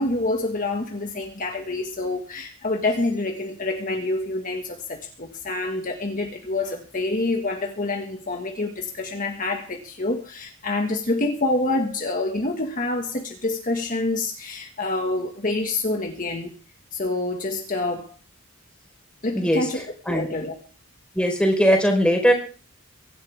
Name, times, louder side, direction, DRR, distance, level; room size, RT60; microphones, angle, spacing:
voice 1, 0.0-16.5 16.9-18.1 19.2-20.5, left 2 dB, 40° left, 1.7 m, -27 dB
voice 2, 19.3-19.6 20.1-20.3 21.2-22.3, equal, 5° left, 4.2 m, -19 dB
24.0 x 11.5 x 3.5 m
head